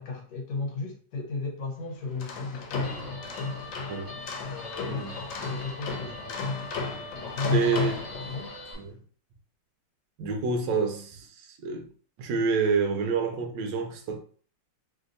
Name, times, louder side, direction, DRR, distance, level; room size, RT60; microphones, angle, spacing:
voice 1, 0.0-2.9 4.4-6.5 7.2-8.5, left 3 dB, 65° left, 1.3 m, -36 dB
sound 1, 2.0-8.7, left 4 dB, 85° left, 1.4 m, -34 dB
Guitar, 2.8-8.7, left 1 dB, 45° left, 0.4 m, -43 dB
voice 2, 4.8-5.2 7.5-8.0 8.7-9.0 10.2-11.9 12.2-14.2, right 4 dB, 75° right, 1.2 m, -28 dB
3.2 x 2.7 x 2.5 m
omnidirectional pair, 2.1 m